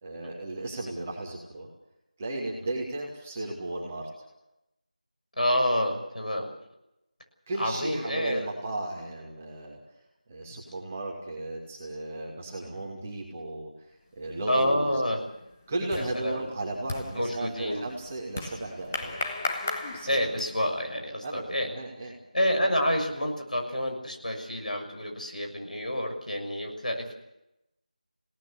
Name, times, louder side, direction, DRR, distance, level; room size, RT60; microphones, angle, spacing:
voice 1, 0.0-1.7 2.2-4.1 7.5-9.8 10.3-15.0 15.7-19.2 19.9-20.4 21.2-22.1, right 2 dB, 15° right, -2 dB, 2.5 m, -35 dB
voice 2, 5.4-6.5 7.6-8.5 14.5-15.2 15.9-16.4 17.2-17.9 20.1-21.7 22.3-27.1, equal, 70° left, 3 dB, 6.5 m, -28 dB
sound 1, 14.3-14.7 15.0-20.8, left 2 dB, 15° left, 1.3 m, -37 dB
27.0 x 18.0 x 7.1 m, 0.91 s
figure-of-eight pair, 170°, 4 cm